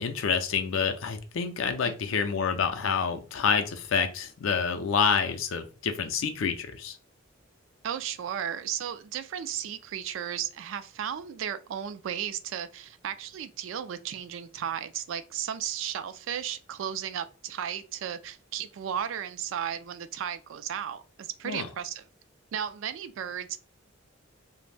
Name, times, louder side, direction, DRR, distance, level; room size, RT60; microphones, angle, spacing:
voice 1, 0.0-7.0 21.4-21.7, left 6 dB, 70° left, 0.4 m, -28 dB
voice 2, 7.8-22.0 22.5-23.6, right 9 dB, 65° right, 0.3 m, -34 dB
3.3 x 2.0 x 2.4 m
head